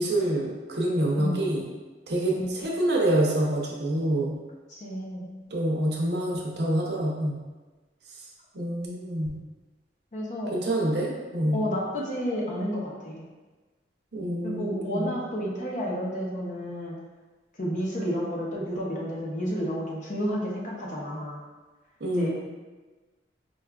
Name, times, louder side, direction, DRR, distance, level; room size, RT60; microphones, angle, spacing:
voice 1, 0.0-1.6 2.1-4.3 5.5-7.4 8.5-9.3 10.5-11.6 14.1-15.1 22.0-22.3, right 1 dB, 65° right, -2 dB, 0.6 m, -26 dB
voice 2, 4.7-5.3 10.1-10.5 11.5-13.2 14.4-17.0 17.6-21.4 22.2-22.3, equal, 45° left, -3 dB, 0.6 m, -31 dB
4.8 x 2.3 x 2.3 m, 1.3 s
head